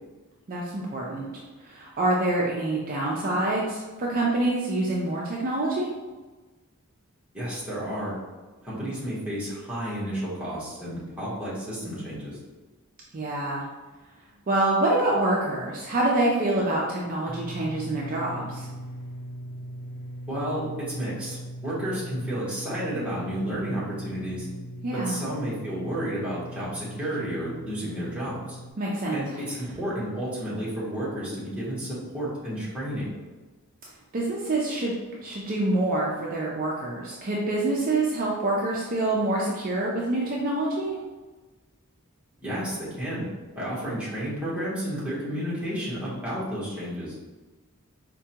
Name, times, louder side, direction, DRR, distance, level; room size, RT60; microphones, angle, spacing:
voice 1, 0.5-5.9 13.1-13.6 14.5-18.7 24.8-25.2 28.8-29.2 34.1-34.9 35.2-41.0, right 2 dB, 40° right, -4 dB, 0.4 m, -26 dB
voice 2, 7.3-8.2 8.6-12.4 20.3-24.5 24.9-28.6 29.1-33.1 42.4-43.3 43.5-47.2, equal, 5° right, -8 dB, 1.1 m, -31 dB
sound 1, 17.3-28.7, right 1 dB, 80° left, 0.8 m, -40 dB
4.5 x 2.2 x 2.8 m, 1.3 s
head